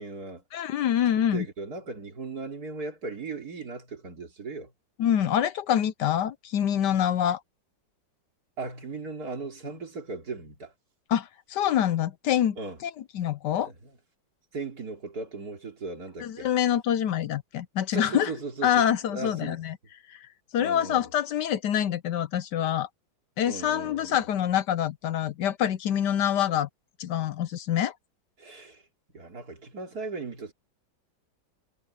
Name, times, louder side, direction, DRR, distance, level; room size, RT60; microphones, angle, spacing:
voice 1, 0.0-0.4 0.9-1.0 1.3-4.7 8.6-10.7 12.6-12.8 13.6-13.7 14.5-16.5 17.9-19.6 20.6-21.1 23.4-24.2 28.4-28.8 29.1-30.5, right 3 dB, 55° right, 3.6 m, -37 dB
voice 2, 0.5-1.4 5.0-7.4 11.1-12.6 12.8-13.7 16.2-18.3 18.6-19.8 20.1-20.3 20.5-22.9 23.4-26.7 27.0-27.9, left 10 dB, 70° left, 1.3 m, -26 dB
omnidirectional pair, 2.0 m